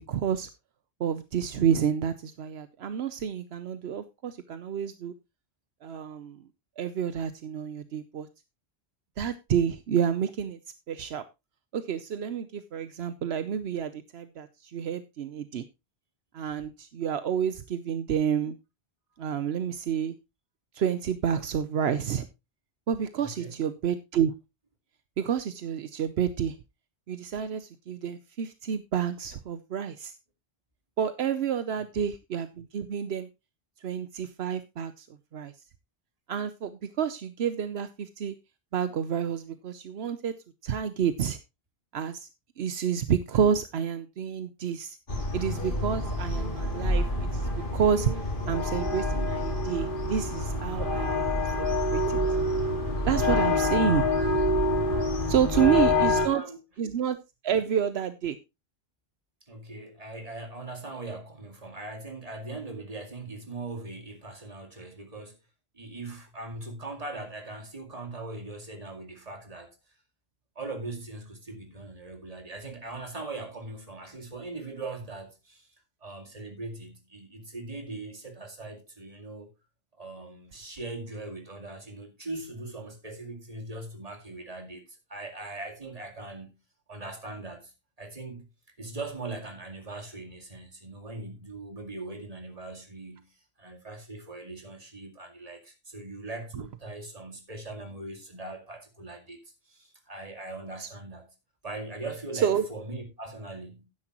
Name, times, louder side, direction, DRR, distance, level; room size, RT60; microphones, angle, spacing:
voice 1, 0.1-0.5 1.0-5.1 5.8-6.4 6.8-8.3 9.2-10.6 10.9-11.2 11.7-15.6 16.3-18.6 19.2-20.1 20.7-22.3 22.9-24.3 25.2-26.6 27.1-30.1 31.0-33.3 33.8-35.1 35.3-35.5 36.3-38.4 38.7-40.4 40.6-41.4 41.9-42.3 42.6-45.0 45.3-48.1 48.5-52.2 53.1-54.2 55.3-56.4 56.8-57.2 57.4-58.4 100.8-100.9 102.4-102.7, right 8 dB, 80° right, 1.0 m, -29 dB
voice 2, 23.2-23.6 31.7-31.8 55.7-56.6 59.5-65.4 65.7-69.8 70.6-75.7 76.0-79.5 80.0-86.6 86.9-87.7 88.0-88.5 88.8-93.3 93.6-99.4 99.7-101.3 101.6-103.8, right 2 dB, 35° right, 2.3 m, -40 dB
sound 1, 45.1-56.3, left 2 dB, 55° left, 2.2 m, -27 dB
12.0 x 9.9 x 3.0 m
omnidirectional pair, 1.1 m